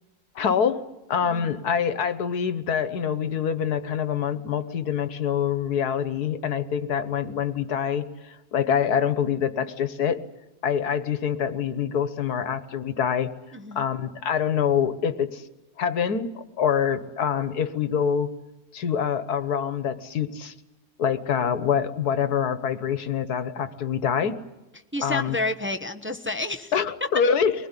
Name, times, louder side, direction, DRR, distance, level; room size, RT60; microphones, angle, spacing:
voice 1, 0.4-0.8 1.1-10.2 10.6-13.3 13.8-15.4 15.8-18.3 18.7-20.5 21.0-24.4 25.0-25.4 26.7-27.5, left 7 dB, 75° left, 12 dB, 1.7 m, -25 dB
voice 2, 13.5-13.9 24.9-26.7, left 2 dB, 10° right, 4 dB, 0.8 m, -30 dB
24.0 x 20.5 x 9.9 m, 1.0 s
omnidirectional pair, 1.7 m